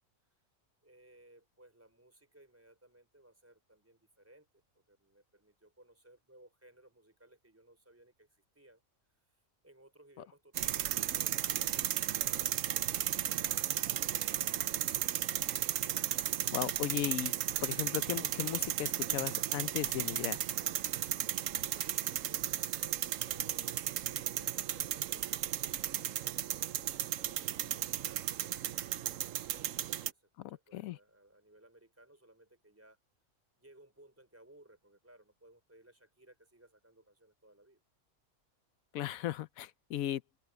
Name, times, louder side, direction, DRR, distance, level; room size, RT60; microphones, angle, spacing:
voice 1, 0.8-4.6 4.9-8.8 9.3-9.4 9.6-12.7 13.0-15.1 21.5-27.0 27.7-28.3 29.6-33.0 33.6-37.8, right 1 dB, 10° right, 4.6 m, -61 dB
sound 1, 10.6-30.1, right 11 dB, 75° right, 1.1 m, -34 dB
voice 2, 16.5-17.3 17.6-20.4 30.4-31.0 38.9-40.2, left 12 dB, 85° left, 1.1 m, -36 dB
open air
omnidirectional pair, 1.4 m